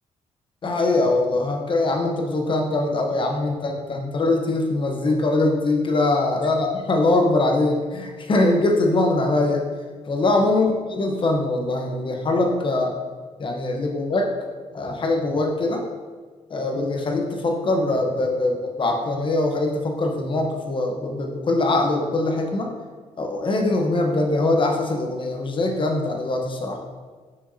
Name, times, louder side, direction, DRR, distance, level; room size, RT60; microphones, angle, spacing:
voice 1, 0.6-9.6 10.1-12.9 13.4-14.3 14.7-15.8 16.5-22.7 23.2-26.8, left 2 dB, 40° left, 2 dB, 1.0 m, -22 dB
6.2 x 5.8 x 2.8 m, 1.5 s
cardioid pair, 105°, 13 cm